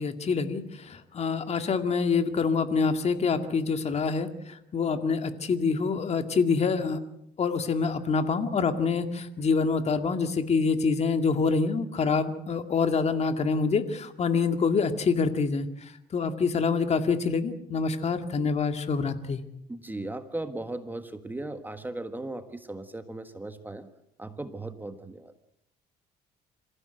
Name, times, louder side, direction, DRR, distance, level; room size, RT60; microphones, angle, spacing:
voice 1, 0.0-7.0 7.4-19.4, left 5 dB, 40° left, 8 dB, 2.2 m, -26 dB
voice 2, 19.7-23.9 24.2-25.3, right 2 dB, 10° right, 9 dB, 1.5 m, -37 dB
27.0 x 15.5 x 8.0 m, 0.80 s
cardioid pair, 110°, 17 cm